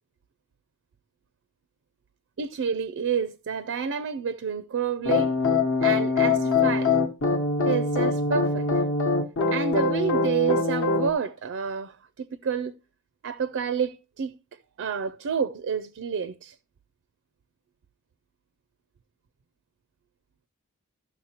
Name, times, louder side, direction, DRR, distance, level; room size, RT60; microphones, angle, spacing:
voice 1, 2.4-5.3 5.8-7.0 7.6-8.7 9.5-12.7 13.2-14.3 14.8-16.6, right 6 dB, 60° right, 0.4 m, -29 dB
sound 1, 5.1-11.1, left 4 dB, 60° left, 1.0 m, -23 dB
14.0 x 6.1 x 2.8 m
head